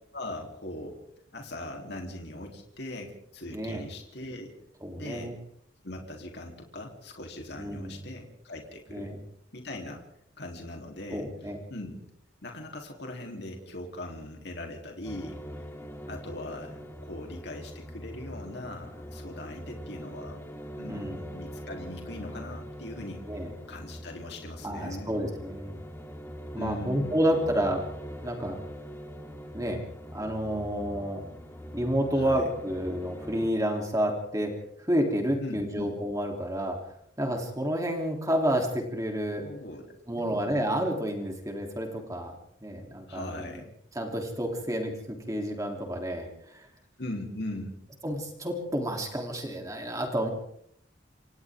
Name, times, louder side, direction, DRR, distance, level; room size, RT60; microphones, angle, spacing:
voice 1, 0.1-1.0 1.3-4.5 5.0-5.3 5.8-9.1 9.5-10.0 10.4-11.3 11.7-12.0 12.4-15.7 16.1-20.4 20.8-25.1 26.6-27.1 32.1-32.4 35.4-35.9 39.4-40.4 43.1-43.7 47.0-47.8, left 1 dB, 60° left, 1 dB, 3.6 m, -40 dB
voice 2, 3.5-3.8 4.8-5.3 7.6-8.0 8.9-9.2 11.1-11.6 20.9-21.2 23.3-23.5 24.6-25.8 26.5-27.8 28.2-28.6 29.5-29.8 30.1-31.2 31.7-34.5 34.8-36.8 37.2-39.4 40.1-42.3 42.6-43.4 43.9-46.7 48.0-50.3, equal, 15° right, 2 dB, 3.3 m, -30 dB
sound 1, 15.0-33.5, equal, 15° left, 2.8 m, -42 dB
28.0 x 27.0 x 3.7 m, 0.70 s
head